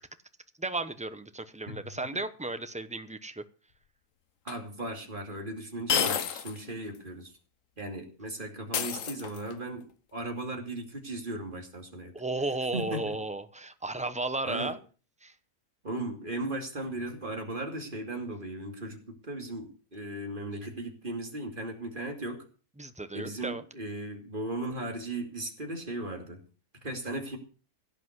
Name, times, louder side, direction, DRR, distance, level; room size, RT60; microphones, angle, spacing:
voice 1, 0.6-3.4 12.1-14.8 15.2-15.3 22.8-23.6, right 2 dB, 5° right, 0.5 m, -34 dB
voice 2, 1.7-2.0 4.4-7.3 7.8-9.8 10.1-12.1 12.7-13.1 14.4-14.7 15.8-22.4 23.1-26.4 26.8-27.4, right 2 dB, 30° right, 2.7 m, -37 dB
sound 1, 4.5-4.6 5.9-6.6 7.0-7.1 8.7-9.6, left 8 dB, 60° left, 1.2 m, -30 dB
16.5 x 5.8 x 8.0 m
omnidirectional pair, 1.7 m